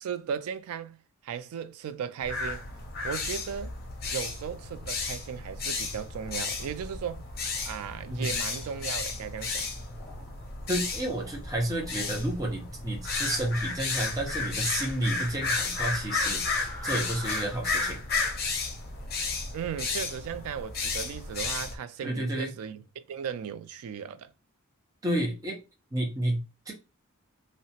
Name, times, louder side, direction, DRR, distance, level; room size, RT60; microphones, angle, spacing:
voice 1, 0.0-2.6 3.0-3.7 4.0-7.2 7.7-9.7 19.5-24.3, right 7 dB, 85° right, 0.3 m, -36 dB
sound 1, 2.2-21.7, left 4 dB, 45° left, 0.6 m, -33 dB
sound 2, 6.1-6.7 7.4-7.8 8.5-9.0 9.9-10.3 10.8-11.4 11.7-12.1 13.1-13.6 13.9-14.9 15.8-17.4, left 1 dB, 10° left, 1.2 m, -48 dB
voice 2, 10.7-18.0 22.0-22.5 25.0-25.6 25.9-26.7, right 1 dB, 15° right, 0.5 m, -31 dB
2.8 x 2.1 x 2.8 m
head